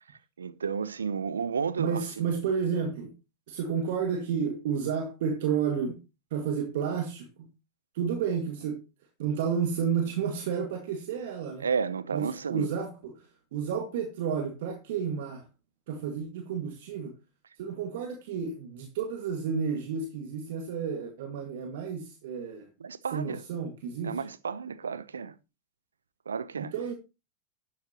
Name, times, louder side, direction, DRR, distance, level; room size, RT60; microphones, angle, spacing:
voice 1, 0.4-2.2 11.6-12.7 22.8-23.4 24.0-25.3 26.3-26.7, right 6 dB, 85° right, 0.8 m, -32 dB
voice 2, 1.8-3.1 3.5-6.0 6.3-7.5 7.9-8.8 9.2-11.6 12.1-13.3 13.5-15.4 15.9-17.1 17.6-22.7 23.1-24.2 26.6-26.9, right 7 dB, 65° right, 2.0 m, -31 dB
12.0 x 9.9 x 3.0 m
hypercardioid pair, 90°, 0 cm